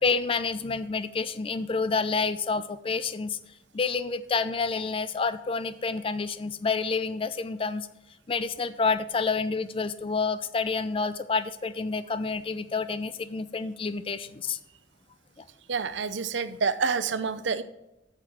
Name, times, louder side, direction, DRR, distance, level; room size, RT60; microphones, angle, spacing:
voice 1, 0.0-3.4 3.7-7.9 8.3-14.6, left 4 dB, 30° left, 14 dB, 0.4 m, -28 dB
voice 2, 15.7-17.6, right 5 dB, 75° right, 13 dB, 0.6 m, -28 dB
8.1 x 6.8 x 6.1 m, 0.91 s
head